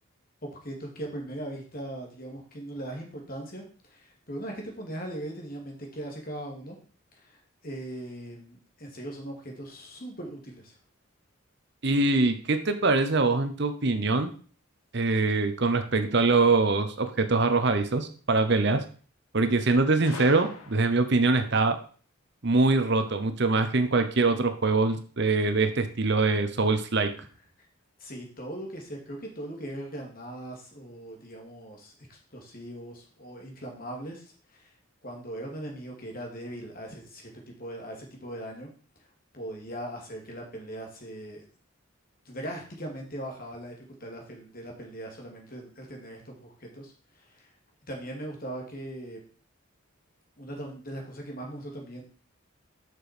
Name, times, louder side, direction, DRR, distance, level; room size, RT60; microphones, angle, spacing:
voice 1, 0.4-6.8 7.1-10.7 28.0-34.7 35.0-38.7 39.3-41.5 42.2-43.7 44.0-47.5 47.9-49.2 50.4-52.0, right 1 dB, 40° left, 1 dB, 2.4 m, -39 dB
voice 2, 11.8-14.3 14.9-18.8 19.3-21.8 22.4-27.1, right 3 dB, 50° right, 9 dB, 0.8 m, -23 dB
Gunshot gunfire, 20.0-21.2, left 3 dB, 80° left, 1.4 m, -42 dB
7.4 x 6.2 x 5.1 m, 0.41 s
head